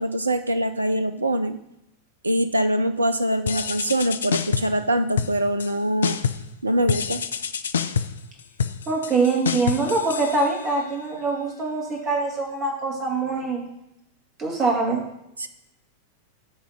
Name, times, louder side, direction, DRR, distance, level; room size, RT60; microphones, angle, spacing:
voice 1, 0.0-1.6 2.2-6.2 6.6-7.2 15.4-15.5, right 1 dB, 80° right, 11 dB, 0.4 m, -23 dB
sound 1, 3.5-4.8 5.2-5.7 6.0-6.5 6.9-10.9, left 7 dB, 65° left, 0.4 m, -27 dB
voice 2, 8.9-13.6 14.4-15.0, right 3 dB, 30° right, 0 dB, 2.2 m, -24 dB
9.2 x 3.6 x 6.4 m, 0.83 s
figure-of-eight pair, 90°, 0 cm